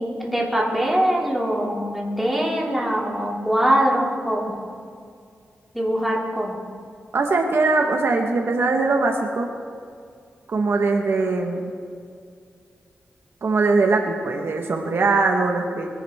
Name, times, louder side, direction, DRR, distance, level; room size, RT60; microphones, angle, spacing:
voice 1, 0.0-4.6 5.7-6.6, equal, ahead, -4 dB, 2.7 m, -22 dB
voice 2, 7.1-9.5 10.5-11.7 13.4-15.9, right 3 dB, 60° right, 2 dB, 1.3 m, -21 dB
22.0 x 10.5 x 3.6 m, 2.2 s
wide cardioid pair, 115°, 4 cm